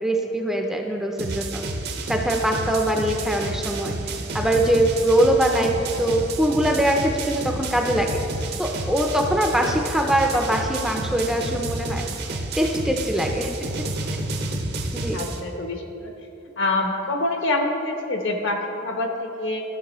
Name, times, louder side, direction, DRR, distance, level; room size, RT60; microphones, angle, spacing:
voice 1, 0.0-1.6 2.1-8.2 8.6-12.1 12.6-13.7 14.9-15.2, right 1 dB, ahead, 2 dB, 0.5 m, -22 dB
sound 1, 1.2-15.4, right 2 dB, 55° right, 0.7 m, -30 dB
voice 2, 15.1-16.1 16.6-19.6, left 2 dB, 65° left, 3 dB, 1.0 m, -26 dB
13.0 x 6.6 x 3.0 m, 2.9 s
head